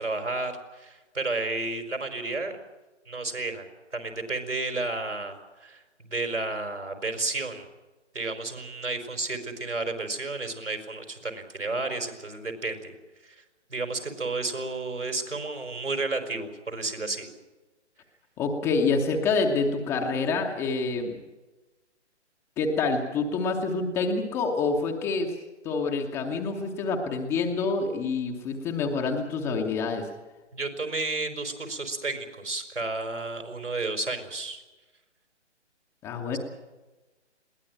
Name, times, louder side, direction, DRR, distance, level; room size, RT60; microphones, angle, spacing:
voice 1, 0.0-2.5 3.1-3.7 3.9-5.8 6.1-7.7 8.1-13.0 13.2-13.4 13.7-17.3 30.5-34.6, right 2 dB, 80° right, 5 dB, 4.8 m, -32 dB
voice 2, 18.4-21.2 22.6-25.3 25.6-30.1 36.0-36.4, left 4 dB, 5° left, 2 dB, 0.8 m, -27 dB
21.5 x 17.5 x 9.0 m, 1.2 s
figure-of-eight pair, 135°, 35 cm